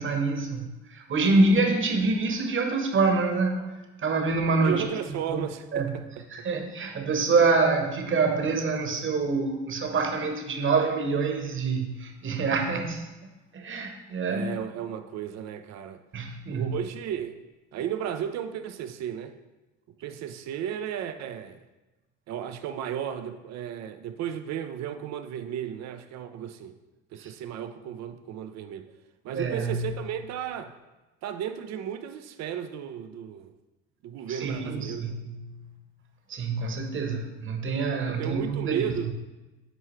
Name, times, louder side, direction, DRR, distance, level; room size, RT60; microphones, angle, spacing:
voice 1, 0.0-4.8 5.3-5.5 5.7-5.9 6.3-13.2 13.5-14.5 16.1-16.7 27.2-27.3 29.3-29.9 34.3-35.6 36.3-38.8, right 3 dB, 40° right, 4 dB, 1.3 m, -26 dB
voice 2, 4.6-6.2 13.8-13.9 14.3-16.0 16.5-17.4 17.7-19.3 20.0-21.6 22.3-26.7 27.1-28.9 29.2-30.7 31.2-33.5 34.0-35.0 38.1-39.1, right 9 dB, 55° right, 9 dB, 0.7 m, -34 dB
9.2 x 4.5 x 3.2 m, 1.1 s
hypercardioid pair, 60°, 32 cm